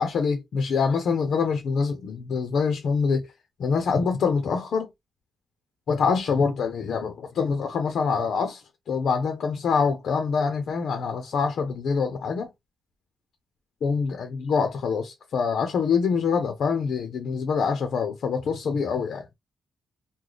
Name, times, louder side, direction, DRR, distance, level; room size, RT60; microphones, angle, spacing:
voice 1, 0.0-3.3 3.6-4.9 5.9-12.5 13.8-19.3, left 5 dB, 55° left, 0.7 m, -25 dB
3.1 x 2.2 x 3.9 m
wide cardioid pair, 160°, 0 cm